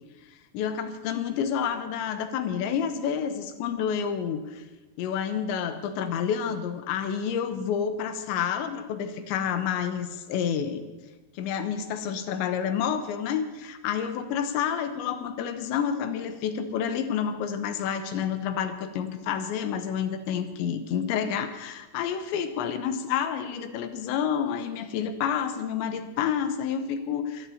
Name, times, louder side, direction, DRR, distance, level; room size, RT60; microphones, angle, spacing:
voice 1, 0.5-4.6 5.0-10.8 11.4-27.5, left 8 dB, 85° left, 8 dB, 3.3 m, -29 dB
24.5 x 16.0 x 2.8 m, 1.1 s
omnidirectional pair, 5.1 m